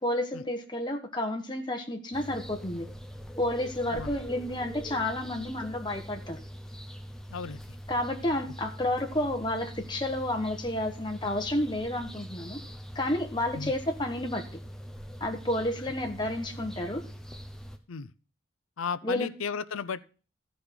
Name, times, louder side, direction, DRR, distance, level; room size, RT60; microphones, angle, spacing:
voice 1, 0.0-2.9 3.4-6.4 7.9-12.6 12.9-14.4 15.2-17.0 19.0-19.3, left 1 dB, 20° left, 4 dB, 1.2 m, -30 dB
sound 1, 2.1-17.8, equal, 5° left, 0.8 m, -43 dB
voice 2, 7.3-7.8 13.5-13.7 15.8-15.9 17.9-18.1 18.8-20.0, left 5 dB, 90° left, 16 dB, 0.6 m, -35 dB
14.0 x 5.3 x 6.0 m, 0.38 s
head